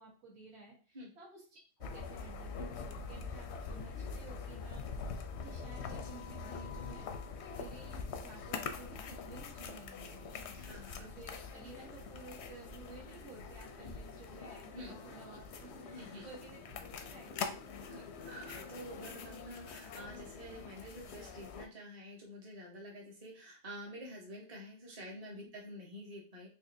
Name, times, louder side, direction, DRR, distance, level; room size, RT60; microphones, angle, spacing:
voice 1, 0.0-7.1 7.5-10.3 11.0-18.1 25.3-25.5, right 3 dB, 50° right, -3 dB, 1.6 m, -54 dB
sound 1, 1.8-21.7, left 5 dB, 65° left, 0.7 m, -44 dB
voice 2, 10.5-11.1 13.8-13.9 14.7-14.9 15.9-16.3 17.9-26.5, equal, 30° right, -2 dB, 1.1 m, -49 dB
sound 2, 11.6-19.0, right 4 dB, 75° right, 1.3 m, -60 dB
4.1 x 2.8 x 2.6 m, 0.38 s
omnidirectional pair, 1.4 m